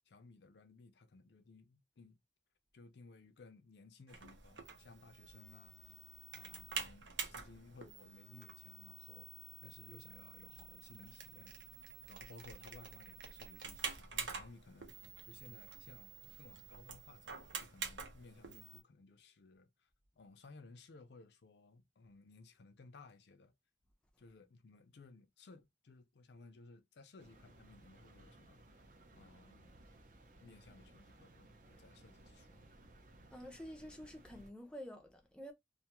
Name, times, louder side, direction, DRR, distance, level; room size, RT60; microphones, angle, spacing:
voice 1, 0.1-2.2 2.7-5.9 6.3-11.6 12.1-14.9 15.2-19.9 20.2-23.5 24.2-28.8 29.1-29.7 30.4-32.6, left 3 dB, 70° left, 0.5 m, -59 dB
sound 1, 4.1-18.8, right 6 dB, 80° right, 0.7 m, -48 dB
sound 2, 27.2-34.5, right 2 dB, 45° right, 0.6 m, -61 dB
voice 2, 33.3-35.5, equal, 5° left, 0.4 m, -49 dB
2.5 x 2.3 x 2.8 m
head